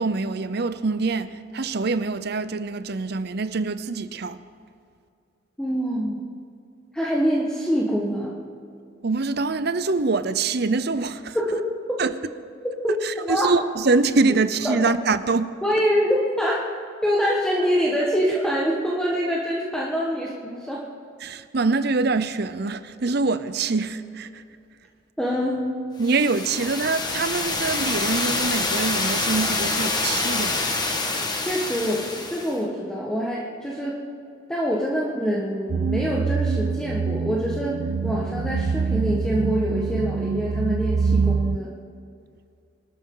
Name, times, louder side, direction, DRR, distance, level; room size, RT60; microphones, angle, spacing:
voice 1, 0.0-4.4 9.0-11.4 12.0-12.1 13.0-15.5 21.2-24.4 26.0-30.7, right 3 dB, 55° right, 0.7 m, -24 dB
voice 2, 5.6-6.2 6.9-8.4 11.3-11.6 12.8-13.0 13.2-13.5 14.6-14.8 15.6-16.7 17.0-20.9 25.2-25.7 31.4-32.0 32.3-34.0 34.5-41.7, equal, 5° left, 1.5 m, -25 dB
sound 1, 26.0-32.6, left 3 dB, 20° left, 1.5 m, -26 dB
sound 2, 35.7-41.6, right 5 dB, 90° right, 0.5 m, -25 dB
25.5 x 13.0 x 3.9 m
head